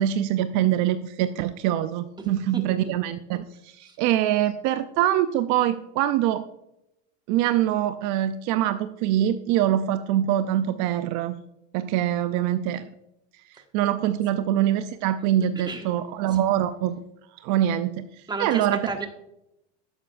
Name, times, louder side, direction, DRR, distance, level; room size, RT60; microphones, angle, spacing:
voice 1, 0.0-6.4 7.3-11.3 11.7-12.8 13.7-17.0 17.4-18.9, right 11 dB, 60° right, 11 dB, 0.6 m, -24 dB
voice 2, 18.3-19.1, right 3 dB, 10° right, 4 dB, 1.5 m, -32 dB
11.5 x 8.3 x 2.5 m, 0.84 s
supercardioid pair, 120°, 34 cm